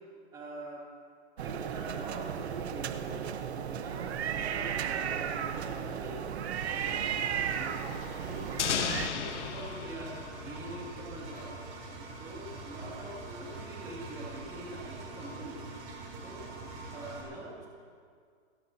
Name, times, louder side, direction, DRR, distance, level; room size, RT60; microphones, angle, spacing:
voice 1, 0.3-0.9 1.4-3.3 3.7-6.3 6.6-7.9 8.1-8.5 9.1-10.1 10.4-11.5 12.2-15.6 16.2-16.5 16.9-17.7, right 1 dB, 10° right, -4 dB, 2.3 m, -44 dB
sound 1, 1.4-9.1, right 8 dB, 65° right, 1.1 m, -34 dB
Engine, 6.5-17.2, right 3 dB, 30° right, 3.9 m, -44 dB
sound 2, 8.6-11.4, left 8 dB, 80° left, 1.3 m, -35 dB
29.0 x 17.0 x 2.8 m, 2.1 s
hypercardioid pair, 175°, 35 cm